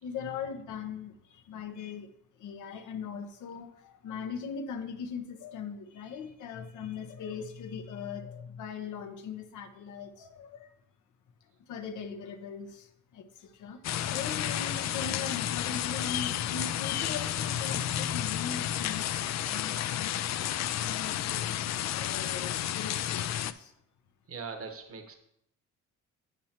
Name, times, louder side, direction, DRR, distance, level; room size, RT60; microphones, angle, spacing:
voice 1, 0.0-2.1 2.4-10.7 11.7-20.3 20.8-23.7, left 6 dB, 80° left, 7 dB, 0.9 m, -40 dB
sound 1, 13.8-23.5, left 11 dB, 65° left, 0.5 m, -31 dB
voice 2, 24.3-25.2, right 5 dB, 50° right, 6 dB, 1.1 m, -40 dB
8.6 x 8.0 x 2.9 m, 0.76 s
cardioid pair, 90°, 30 cm